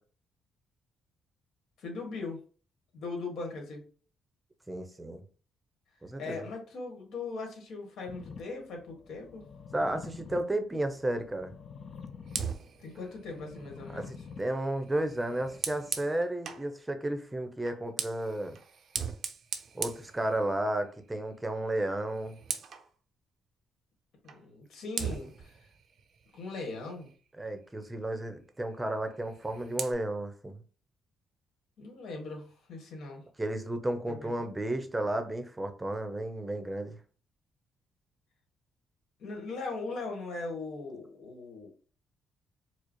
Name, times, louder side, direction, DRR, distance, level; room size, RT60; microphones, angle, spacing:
voice 1, 1.8-2.4 2.9-3.8 6.2-9.4 12.8-14.2 24.2-25.5 26.3-27.1 31.8-33.2 34.1-34.5 39.2-41.7, left 3 dB, 70° left, 2 dB, 1.4 m, -39 dB
voice 2, 4.7-5.2 6.0-6.5 9.7-11.5 13.9-18.6 19.7-22.4 27.4-30.6 33.4-37.0, right 1 dB, 15° right, 7 dB, 0.7 m, -33 dB
sound 1, 8.1-16.0, left 5 dB, 50° left, 0.5 m, -48 dB
Fire, 12.3-16.7 17.6-20.9 21.2-21.5 21.8-22.9 24.3-24.4 24.9-27.3 29.2-29.9, right 6 dB, 55° right, 0.5 m, -40 dB
4.7 x 2.0 x 3.0 m, 0.40 s
cardioid pair, 90°, 0 cm